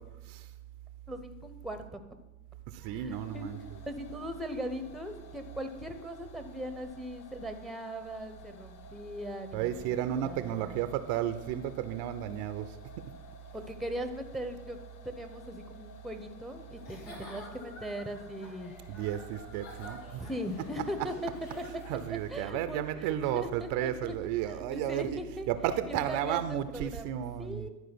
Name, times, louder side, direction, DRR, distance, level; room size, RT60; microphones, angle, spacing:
voice 1, 1.1-2.0 2.8-3.5 3.9-10.8 13.5-14.8 15.0-18.7 20.2-21.3 21.6-21.7 22.1-25.5 25.9-27.1 27.4-27.7, equal, ahead, 0.9 m, -39 dB
voice 2, 2.7-3.6 9.5-12.8 18.9-20.2 21.9-25.2 25.5-27.7, right 11 dB, 55° right, 0.7 m, -33 dB
sound 1, 3.1-22.5, left 5 dB, 45° left, 1.1 m, -54 dB
Giggle / Chuckle chortle, 16.8-22.3, left 1 dB, 80° left, 2.2 m, -50 dB
11.5 x 4.7 x 6.0 m
hypercardioid pair, 80°, 41 cm